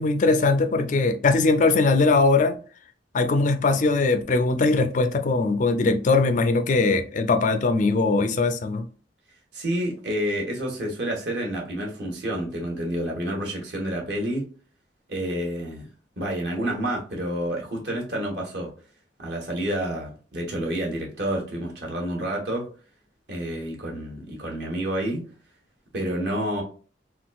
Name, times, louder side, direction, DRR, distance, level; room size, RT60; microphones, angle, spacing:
voice 1, 0.0-2.6 3.1-8.9, left 3 dB, 45° left, 0.4 m, -21 dB
voice 2, 9.5-14.4 15.1-15.9 16.2-18.7 19.2-22.6 23.3-25.2 25.9-26.6, right 1 dB, 65° right, 1.1 m, -29 dB
3.8 x 2.3 x 2.3 m
head